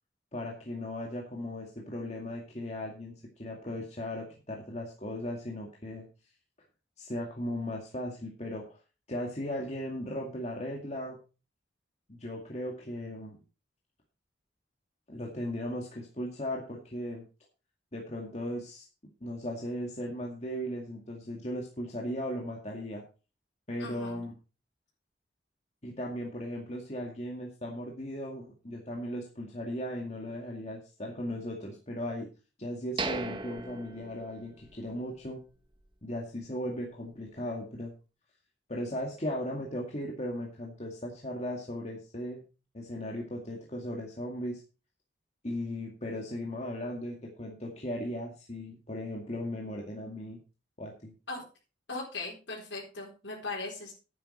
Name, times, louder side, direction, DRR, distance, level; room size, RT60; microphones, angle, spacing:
voice 1, 0.3-6.1 7.0-8.8 9.1-11.2 12.1-13.4 15.1-17.3 17.9-18.9 19.2-23.0 23.7-24.3 25.8-32.3 32.6-35.4 36.0-37.9 38.7-42.4 42.7-44.6 45.4-50.4 50.8-51.1, left 1 dB, 35° left, -1 dB, 2.2 m, -37 dB
voice 2, 23.8-24.2 51.3-51.4 51.9-53.9, left 3 dB, 75° left, -4 dB, 4.1 m, -39 dB
sound 1, 33.0-34.9 35.2-35.3 35.8-36.0, right 3 dB, 25° right, 1.0 m, -37 dB
11.0 x 9.4 x 4.5 m, 0.33 s
head